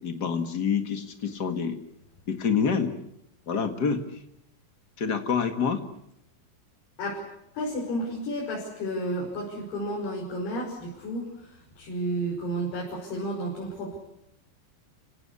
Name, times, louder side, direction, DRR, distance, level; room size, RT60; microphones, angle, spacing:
voice 1, 0.0-1.8 2.3-2.9 3.5-4.0 5.0-5.8, left 6 dB, 45° left, 6 dB, 1.4 m, -27 dB
voice 2, 7.5-14.0, right 1 dB, 85° left, -3 dB, 7.7 m, -32 dB
30.0 x 17.5 x 8.5 m, 0.79 s
omnidirectional pair, 4.6 m